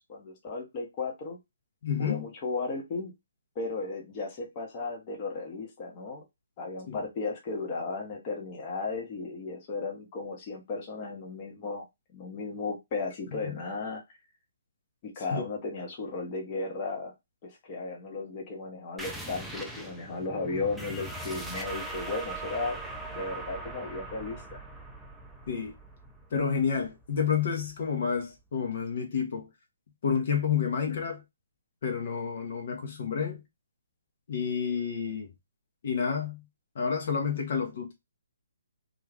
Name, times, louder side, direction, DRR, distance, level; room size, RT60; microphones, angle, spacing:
voice 1, 0.1-1.4 2.0-3.1 3.5-6.2 6.6-11.9 12.1-14.0 15.2-17.1 17.4-22.8 23.1-24.6, left 3 dB, 30° left, 0.9 m, -35 dB
voice 2, 1.8-2.3 6.9-7.0 13.4-13.6 15.3-15.4 25.5-25.7 26.3-29.5 30.0-31.2 31.8-33.4 34.3-35.3 35.8-36.4 36.7-37.9, left 6 dB, 55° left, 0.8 m, -29 dB
sound 1, 19.0-28.2, right 2 dB, ahead, 0.4 m, -41 dB
2.4 x 2.4 x 3.2 m
hypercardioid pair, 155°, 0 cm